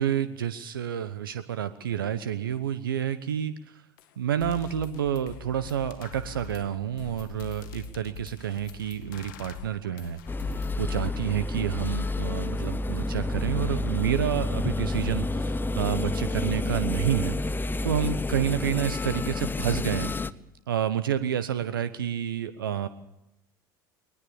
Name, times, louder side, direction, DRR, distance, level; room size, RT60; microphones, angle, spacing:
voice 1, 0.0-3.5 4.2-10.2 10.8-17.6 17.8-20.1 20.7-22.9, right 9 dB, 85° right, 12 dB, 0.9 m, -29 dB
sound 1, 4.0-4.1 4.4-10.8, left 6 dB, 75° left, 2.0 m, -43 dB
sound 2, 10.3-20.3, left 2 dB, 20° left, 1.0 m, -29 dB
22.0 x 20.0 x 7.1 m, 0.87 s
hypercardioid pair, 70°, 11 cm